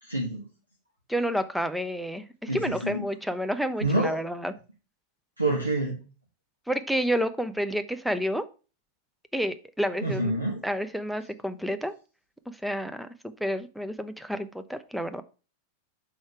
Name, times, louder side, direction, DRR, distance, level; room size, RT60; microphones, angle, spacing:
voice 1, 0.0-0.4 2.5-3.0 3.8-4.2 5.4-6.0 10.0-10.6, right 1 dB, 85° right, -1 dB, 1.4 m, -27 dB
voice 2, 1.1-4.5 6.7-8.5 9.3-10.4 10.6-11.9 12.5-13.1 13.4-15.2, equal, ahead, 10 dB, 0.6 m, -29 dB
6.4 x 4.7 x 4.8 m, 0.34 s
figure-of-eight pair, 90°, 0 cm